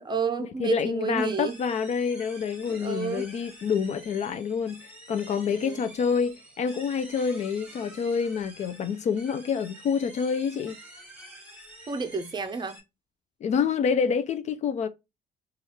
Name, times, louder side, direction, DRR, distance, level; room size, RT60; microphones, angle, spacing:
voice 1, 0.0-1.6 2.8-3.3 5.5-5.8 11.9-12.8, right 5 dB, 25° right, 0.6 m, -30 dB
voice 2, 0.6-4.8 5.1-10.8 13.4-14.9, left 6 dB, 45° left, 0.4 m, -27 dB
sound 1, 1.2-12.8, right 1 dB, 10° right, 1.3 m, -48 dB
3.1 x 2.4 x 4.1 m
cardioid pair, 110°, 17 cm